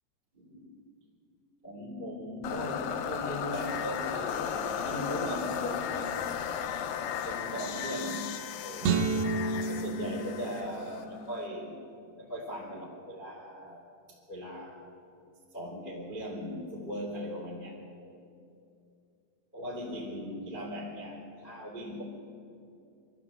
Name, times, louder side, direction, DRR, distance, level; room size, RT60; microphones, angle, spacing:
voice 1, 0.3-0.8 1.6-6.1 7.2-9.0 9.4-11.8 12.1-14.8 15.5-18.2 19.5-22.0, equal, 15° right, -6 dB, 2.8 m, -39 dB
sound 1, 2.4-11.5, left 8 dB, 70° left, 2.2 m, -35 dB
sound 2, 8.8-11.2, right 4 dB, 75° right, 3.4 m, -31 dB
24.0 x 13.5 x 8.2 m, 2.6 s
omnidirectional pair, 5.3 m